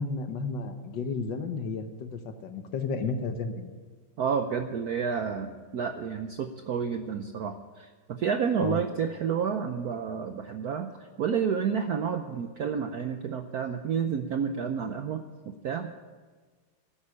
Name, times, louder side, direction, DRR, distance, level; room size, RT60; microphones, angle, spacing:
voice 1, 0.0-3.7 8.6-8.8, left 4 dB, 60° left, 7 dB, 1.6 m, -32 dB
voice 2, 4.2-10.9 11.2-16.0, right 7 dB, 70° right, 7 dB, 0.9 m, -30 dB
12.5 x 9.7 x 8.5 m, 1.4 s
omnidirectional pair, 2.4 m